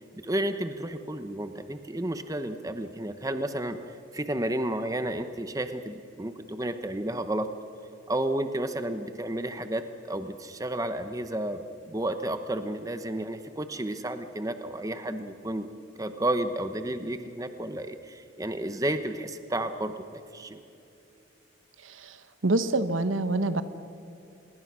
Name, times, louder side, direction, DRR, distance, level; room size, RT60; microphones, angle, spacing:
voice 1, 0.2-3.8 4.1-7.5 8.1-15.7 16.0-20.6, right 1 dB, 15° right, 9 dB, 0.8 m, -32 dB
voice 2, 21.8-22.2 22.4-23.6, right 2 dB, 70° right, 11 dB, 1.1 m, -26 dB
27.0 x 21.0 x 6.2 m, 2.8 s
head